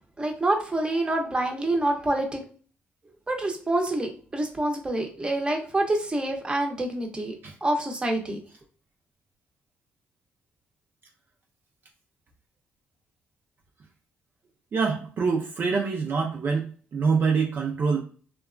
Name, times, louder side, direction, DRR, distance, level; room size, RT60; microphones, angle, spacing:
voice 1, 0.2-2.4 3.3-7.3 7.6-8.4, right 1 dB, 20° right, 3 dB, 0.7 m, -26 dB
voice 2, 14.7-18.0, right 5 dB, 50° right, 0 dB, 0.4 m, -25 dB
2.8 x 2.2 x 2.4 m, 0.42 s
cardioid pair, 85°, 4 cm